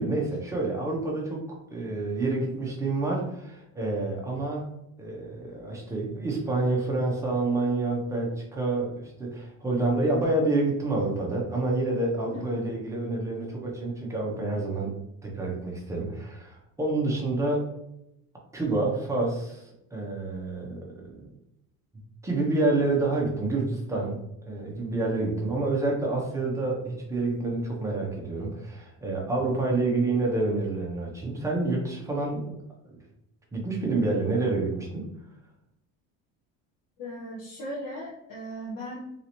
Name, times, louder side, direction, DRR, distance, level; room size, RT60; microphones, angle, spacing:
voice 1, 0.0-4.6 5.0-15.0 15.2-17.6 18.5-21.3 22.2-24.2 24.4-32.6 32.9-33.0 33.5-35.1, right 2 dB, 10° right, -2 dB, 0.5 m, -28 dB
voice 2, 12.3-12.6 37.0-39.1, equal, 80° left, -7 dB, 1.1 m, -37 dB
3.2 x 2.6 x 2.8 m, 0.83 s
cardioid pair, 165°, 33 cm